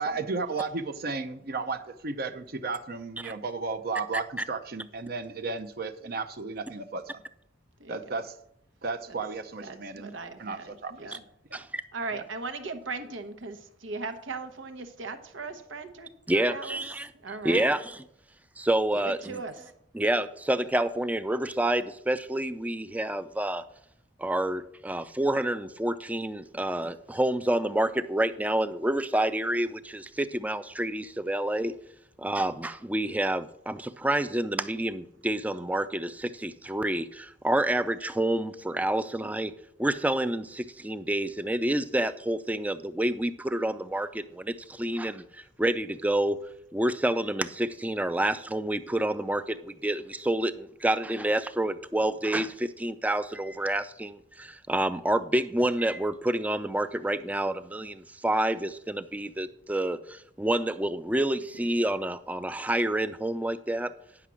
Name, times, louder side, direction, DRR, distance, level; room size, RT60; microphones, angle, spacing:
voice 1, 0.0-7.2 7.9-8.4 8.8-10.1 10.4-11.2 12.1-12.2, right 4 dB, 50° right, 8 dB, 0.6 m, -34 dB
voice 2, 7.8-8.2 9.1-9.2 9.6-11.2 11.9-16.8 17.1-17.8 18.9-19.7 26.5-26.7, right 3 dB, 85° right, 10 dB, 1.0 m, -38 dB
voice 3, 16.3-17.1 17.4-17.8 18.6-19.2 19.9-23.6 24.2-31.7 32.2-39.5 39.8-46.4 46.7-63.9, right 1 dB, 10° right, 13 dB, 0.4 m, -28 dB
9.8 x 5.9 x 6.1 m, 0.75 s
head